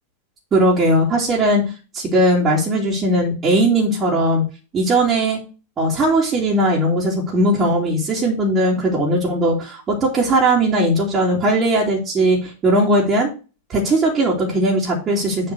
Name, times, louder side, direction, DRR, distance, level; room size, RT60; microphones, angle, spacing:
voice 1, 0.5-1.6 1.9-4.4 4.7-5.4 5.8-13.3 13.7-15.5, right 1 dB, 25° right, -5 dB, 2.7 m, -18 dB
7.8 x 4.2 x 6.2 m, 0.32 s
figure-of-eight pair, 90°, 0 cm